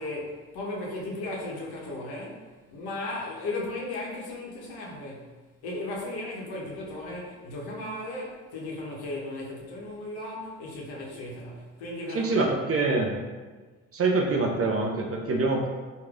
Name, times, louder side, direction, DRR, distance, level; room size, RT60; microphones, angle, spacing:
voice 1, 0.0-5.3 5.6-13.0, left 2 dB, 55° left, -2 dB, 1.0 m, -36 dB
voice 2, 12.1-13.1 13.9-15.7, right 3 dB, 30° right, 0 dB, 0.6 m, -25 dB
4.5 x 2.8 x 2.4 m, 1.4 s
figure-of-eight pair, 45°, 45 cm